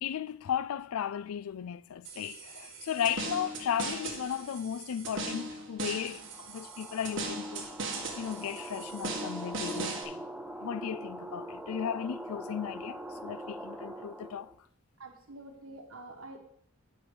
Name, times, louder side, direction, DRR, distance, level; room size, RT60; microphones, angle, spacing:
voice 1, 0.0-7.7 8.2-10.2 10.6-14.5, left 9 dB, 90° left, 0.4 m, -35 dB
sound 1, 2.0-10.0, right 3 dB, 55° right, 1.5 m, -39 dB
sound 2, 6.2-14.5, right 1 dB, 5° right, 0.4 m, -43 dB
voice 2, 15.0-16.4, right 2 dB, 75° right, 1.7 m, -47 dB
9.7 x 5.5 x 4.8 m
head